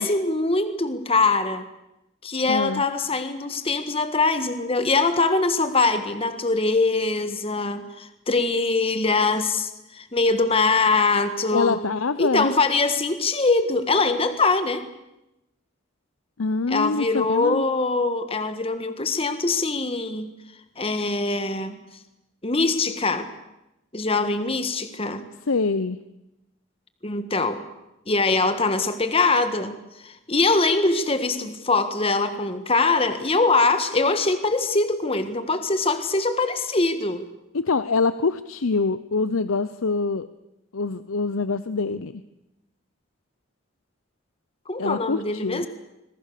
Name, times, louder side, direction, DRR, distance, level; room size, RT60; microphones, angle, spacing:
voice 1, 0.0-1.6 2.2-11.8 12.2-14.8 16.7-20.3 20.8-21.8 22.4-23.3 23.9-25.2 27.0-27.6 28.1-37.3 44.7-45.7, left 3 dB, 25° left, 10 dB, 1.5 m, -23 dB
voice 2, 2.5-2.8 11.5-12.5 16.4-17.6 25.5-26.0 37.5-40.3 40.7-42.2 44.8-45.7, left 4 dB, 80° left, 13 dB, 0.8 m, -25 dB
26.5 x 22.0 x 6.8 m, 0.92 s
head